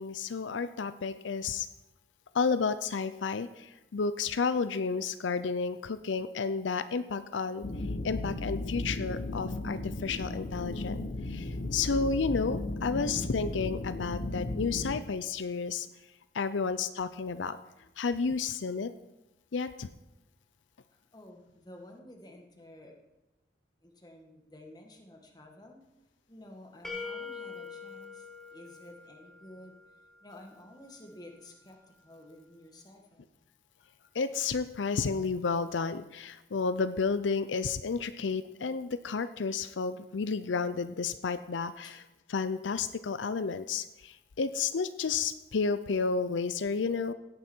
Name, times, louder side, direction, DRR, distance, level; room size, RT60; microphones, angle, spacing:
voice 1, 0.0-1.7 2.3-7.6 8.0-11.0 11.3-15.9 16.3-17.6 18.0-18.9 19.5-19.9 34.1-42.0 42.3-47.1, left 5 dB, 85° left, 12 dB, 0.5 m, -31 dB
sound 1, 7.6-15.0, left 2 dB, 60° left, 0.9 m, -35 dB
voice 2, 20.9-23.0 23.8-25.8 26.3-29.8 30.2-31.8 32.0-33.3 41.8-42.0, left 1 dB, 20° left, 2 dB, 1.7 m, -52 dB
sound 2, 26.8-29.7, left 4 dB, ahead, 1.7 m, -43 dB
16.5 x 9.5 x 4.5 m, 0.95 s
head